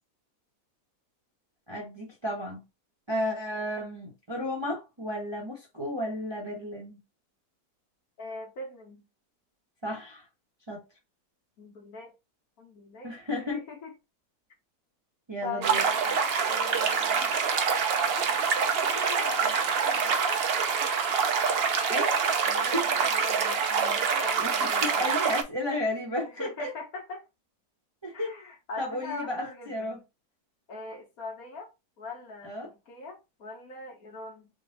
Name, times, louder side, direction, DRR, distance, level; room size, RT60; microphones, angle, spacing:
voice 1, 1.7-2.6 3.1-7.0 9.8-10.2 10.7-10.8 13.0-13.6 15.3-15.8 21.9-22.1 22.7-22.8 24.4-24.5 24.8-26.7 28.0-28.3 28.8-30.0 32.4-32.7, left 1 dB, 25° right, 0.7 m, -33 dB
voice 2, 8.2-9.0 11.6-12.1 12.6-13.9 15.4-17.3 18.8-20.4 22.4-25.0 26.2-27.3 28.1-30.0 30.7-31.7 32.0-34.5, left 3 dB, 65° left, 1.7 m, -42 dB
sound 1, 15.6-25.4, right 6 dB, 70° right, 0.5 m, -26 dB
3.8 x 2.2 x 3.9 m
omnidirectional pair, 1.7 m